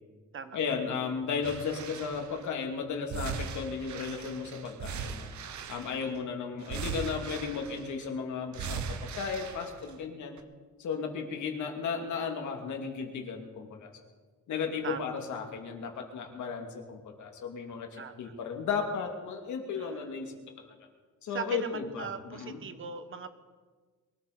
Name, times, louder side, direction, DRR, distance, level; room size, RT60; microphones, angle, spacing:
voice 1, 0.5-5.3 5.7-10.4 10.8-13.9 14.5-20.7 21.2-22.6, left 5 dB, 90° left, 3 dB, 2.3 m, -35 dB
sound 1, 1.4-2.4 3.1-6.2 6.6-8.1 8.5-10.0 10.4-10.5, right 6 dB, 75° right, 1.1 m, -39 dB
voice 2, 5.8-6.2 14.8-15.1 18.0-18.3 19.7-20.1 21.3-23.3, right 5 dB, 45° right, 10 dB, 1.2 m, -40 dB
23.0 x 14.0 x 4.0 m, 1.4 s
cardioid pair, 120°, 29 cm